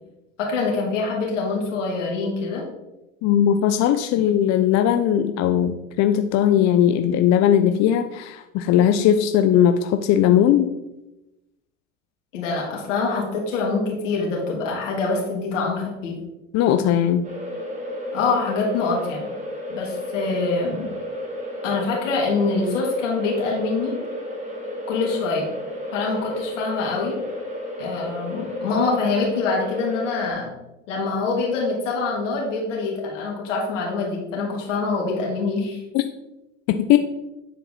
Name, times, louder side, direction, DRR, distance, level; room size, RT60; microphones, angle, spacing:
voice 1, 0.4-2.6 12.3-16.1 18.1-19.3 19.7-20.9 21.6-23.9 24.9-25.5 25.9-27.2 27.8-30.5 30.9-35.8, left 4 dB, 80° left, -2 dB, 3.0 m, -25 dB
voice 2, 3.2-10.7 16.5-17.3 35.9-36.0 36.7-37.0, left 10 dB, 45° left, 8 dB, 0.6 m, -18 dB
sound 1, 17.2-30.3, left 1 dB, 20° right, 2.3 m, -32 dB
10.0 x 4.6 x 4.1 m, 0.96 s
hypercardioid pair, 85°, 37 cm